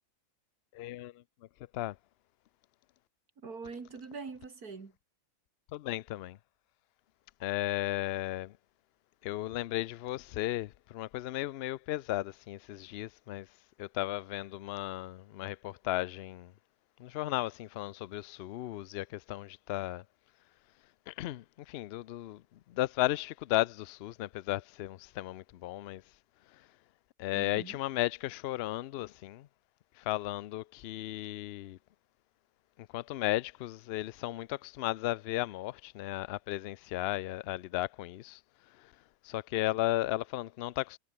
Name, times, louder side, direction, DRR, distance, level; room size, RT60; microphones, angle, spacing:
voice 1, 0.7-1.2 1.7-2.0 5.7-6.4 7.4-8.6 9.2-13.5 13.8-16.5 17.0-20.0 21.1-26.0 26.5-26.7 27.2-29.5 30.0-31.8 32.8-38.4 38.7-38.9 39.2-41.0, left 15 dB, 80° left, 0.5 m, -35 dB
voice 2, 3.4-4.9 27.3-27.8, right 4 dB, 75° right, 3.0 m, -43 dB
omnidirectional pair, 1.6 m